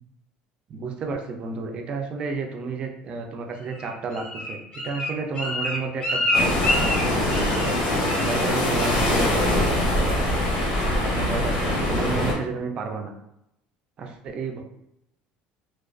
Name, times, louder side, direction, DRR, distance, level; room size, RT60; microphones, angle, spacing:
voice 1, 0.7-6.8 7.1-10.4 11.0-13.1 14.0-14.6, right 4 dB, 30° right, 3 dB, 0.3 m, -32 dB
Bird, 3.7-7.8 8.1-8.4 8.7-9.1 9.4-9.8 10.2-10.3, left 1 dB, 30° left, 0.6 m, -28 dB
sound 1, 6.3-12.3, left 1 dB, 85° left, 0.8 m, -23 dB
2.3 x 2.2 x 2.4 m, 0.81 s
cardioid pair, 165°, 3 cm